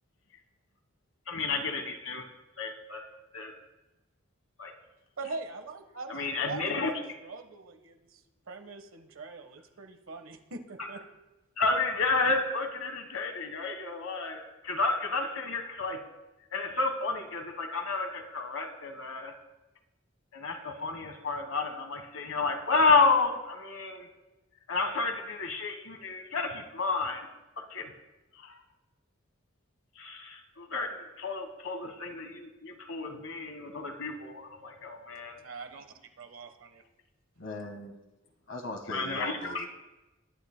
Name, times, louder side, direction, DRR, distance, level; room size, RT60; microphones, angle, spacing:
voice 1, 1.3-2.2 2.6-3.0 3.3-3.5 4.6-4.7 6.1-6.9 11.6-16.0 16.5-19.3 20.3-24.1 24.7-27.2 27.6-27.9 28.4-28.5 30.0-35.3 38.9-39.7, left 3 dB, 85° left, 6 dB, 1.4 m, -31 dB
voice 2, 5.2-7.0 7.2-11.0 35.4-35.8 36.2-36.9, right 3 dB, 90° right, 6 dB, 1.3 m, -43 dB
voice 3, 37.4-38.0 38.5-39.7, left 2 dB, 65° left, 4 dB, 1.6 m, -39 dB
21.0 x 11.5 x 2.2 m, 1.0 s
head